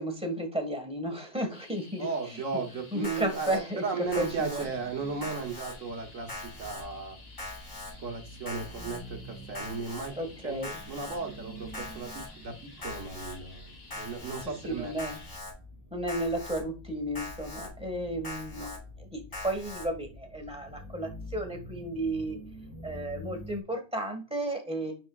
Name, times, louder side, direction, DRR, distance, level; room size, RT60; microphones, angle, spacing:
voice 1, 0.0-2.4 2.9-4.7 10.2-10.8 14.4-15.2 15.9-22.4 22.8-24.9, right 1 dB, 5° right, 3 dB, 1.4 m, -33 dB
sound 1, 1.5-15.4, left 3 dB, 50° left, 1.5 m, -53 dB
voice 2, 2.0-7.2 8.0-14.9 18.5-18.7, right 4 dB, 75° right, 3 dB, 1.7 m, -36 dB
Alarm, 3.0-3.6 4.1-4.7 5.2-5.7 6.3-6.8 7.4-7.9 8.5-9.0 9.5-10.1 10.6-11.2 11.7-12.3 12.8-13.3 13.9-14.4 15.0-15.5 16.1-16.6 17.2-17.7 18.2-18.8 19.3-19.9, left 2 dB, 75° left, 3.2 m, -41 dB
sound 2, 4.0-23.6, equal, 15° left, 1.3 m, -48 dB
9.5 x 4.3 x 2.3 m, 0.33 s
omnidirectional pair, 1.4 m